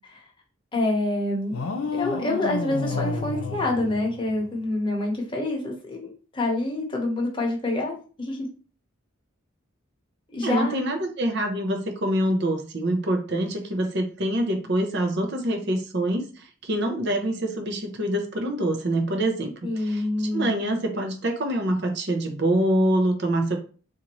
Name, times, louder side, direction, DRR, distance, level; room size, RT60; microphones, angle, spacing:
voice 1, 0.7-1.7 1.9-8.5 10.3-10.8 19.6-20.5, left 2 dB, 25° left, -1 dB, 1.0 m, -27 dB
sound 1, 1.5-4.7, left 4 dB, 80° left, 0.6 m, -30 dB
voice 2, 10.4-23.6, right 1 dB, 55° right, 4 dB, 0.7 m, -25 dB
3.8 x 2.6 x 3.0 m, 0.38 s
head